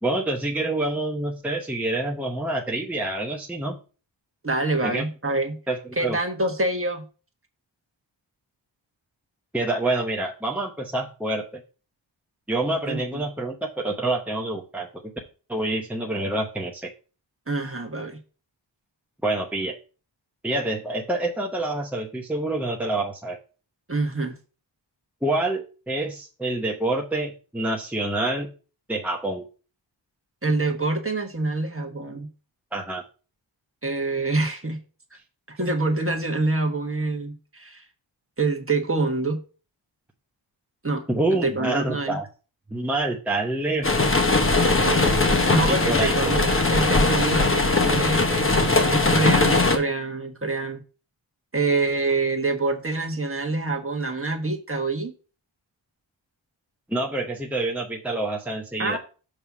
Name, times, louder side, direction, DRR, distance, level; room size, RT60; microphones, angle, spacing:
voice 1, 0.0-3.8 4.8-5.0 5.7-5.8 6.0-6.2 9.5-11.6 12.5-14.9 15.5-16.9 19.2-19.8 20.4-23.4 25.2-28.5 28.9-29.4 32.7-33.0 41.1-42.3 42.7-44.0 45.7-46.1 46.5-46.6 56.9-59.0, right 2 dB, 5° right, 0 dB, 0.9 m, -27 dB
voice 2, 4.4-5.6 6.0-7.0 12.9-13.2 17.5-18.2 23.9-24.3 30.4-32.3 33.8-34.8 35.5-37.8 38.4-39.4 40.8-42.2 44.8-50.8 51.5-55.1 58.8-59.0, right 3 dB, 25° right, 2 dB, 1.4 m, -26 dB
sound 1, 43.8-49.8, left 3 dB, 25° left, 1.0 m, -20 dB
7.1 x 3.3 x 5.9 m, 0.35 s
wide cardioid pair, 70°, 48 cm